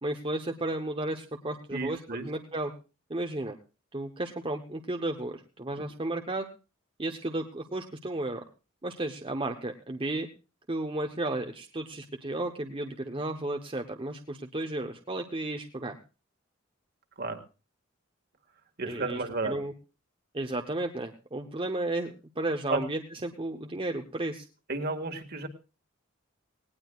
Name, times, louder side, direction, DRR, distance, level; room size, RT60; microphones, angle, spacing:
voice 1, 0.0-2.7 3.1-3.6 3.9-6.5 7.0-8.4 8.8-10.3 10.7-16.0 18.8-19.2 19.4-19.7 20.3-24.5, right 2 dB, 25° right, 3 dB, 0.9 m, -33 dB
voice 2, 1.7-2.3 17.2-17.4 18.8-19.6 22.7-22.8 24.7-25.5, right 3 dB, 50° right, 5 dB, 1.9 m, -32 dB
18.5 x 18.5 x 2.4 m, 0.32 s
head